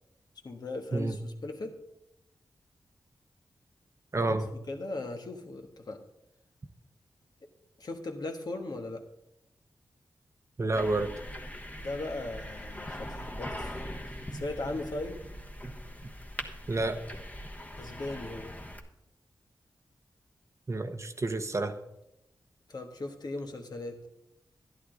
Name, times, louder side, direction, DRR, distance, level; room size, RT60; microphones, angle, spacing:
voice 1, 0.4-1.8 4.7-6.0 7.4-7.5 7.8-9.0 11.8-15.2 17.8-18.5 22.7-24.0, left 2 dB, 60° left, 4 dB, 1.5 m, -38 dB
voice 2, 4.1-4.5 10.6-11.1 14.3-14.4 15.6-15.7 16.7-17.0 20.7-21.7, right 2 dB, 40° right, 8 dB, 0.9 m, -29 dB
sound 1, 10.7-18.8, equal, 20° left, 1.3 m, -41 dB
11.5 x 10.5 x 3.9 m, 0.85 s
cardioid pair, 60°, 8 cm